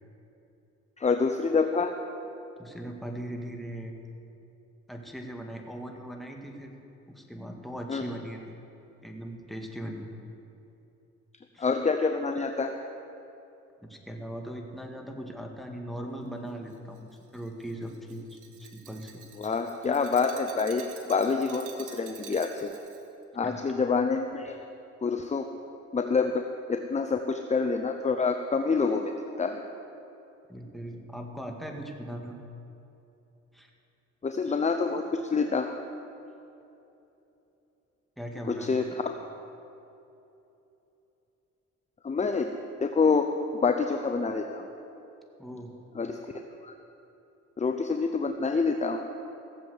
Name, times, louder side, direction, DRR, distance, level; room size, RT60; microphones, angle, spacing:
voice 1, 1.0-1.9 7.9-8.0 11.6-12.7 19.4-22.7 23.3-24.6 25.0-25.5 25.9-29.1 29.4-29.6 34.2-35.8 38.5-39.1 42.0-42.5 42.8-43.3 43.5-44.7 45.9-46.2 46.6-46.7 47.6-49.1, left 4 dB, 25° left, 6 dB, 0.7 m, -27 dB
voice 2, 2.6-3.9 4.9-6.8 7.1-8.6 9.0-10.1 11.5-11.7 13.8-19.2 23.4-23.7 30.5-32.4 33.5-33.7 38.2-38.8 45.4-45.7, right 1 dB, ahead, 1 dB, 1.9 m, -39 dB
Glass, 16.7-23.1, right 7 dB, 80° right, 1.5 m, -49 dB
16.5 x 7.6 x 8.0 m, 2.9 s
cardioid pair, 90°, 30 cm